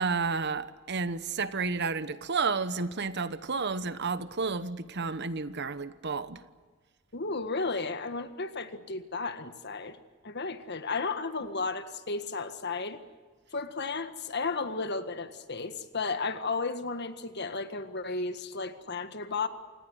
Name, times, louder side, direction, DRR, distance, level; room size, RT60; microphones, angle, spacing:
voice 1, 0.0-6.4, right 4 dB, 55° right, 14 dB, 1.1 m, -31 dB
voice 2, 7.1-10.0 10.2-13.0 13.5-19.5, left 4 dB, 55° left, 10 dB, 1.7 m, -33 dB
27.5 x 19.0 x 8.0 m, 1.4 s
head